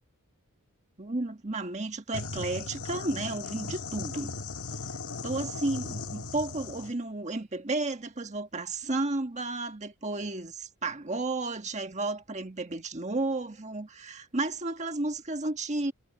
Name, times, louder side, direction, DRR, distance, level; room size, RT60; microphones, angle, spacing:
voice 1, 1.0-4.3 5.2-15.9, right 2 dB, 30° right, 1.5 m, -32 dB
sound 1, 2.1-6.9, left 3 dB, 75° left, 1.8 m, -37 dB
head